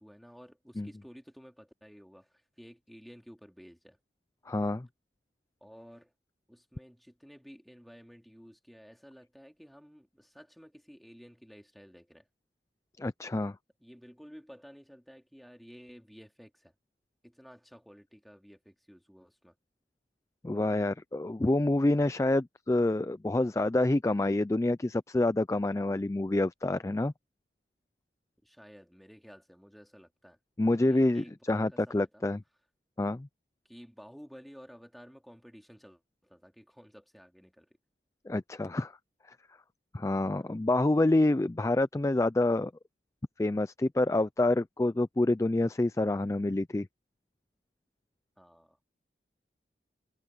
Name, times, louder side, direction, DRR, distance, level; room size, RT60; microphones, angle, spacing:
voice 1, 0.0-4.0 5.6-6.1 6.5-12.2 13.8-16.7 17.2-19.5 28.4-30.4 30.7-32.3 33.7-37.7 40.4-40.5 48.4-48.8, equal, ahead, 2.7 m, -53 dB
voice 2, 4.5-4.9 13.0-13.6 20.4-27.1 30.6-32.4 33.0-33.3 38.3-38.9 39.9-42.7 43.4-46.9, left 2 dB, 15° left, 0.3 m, -27 dB
head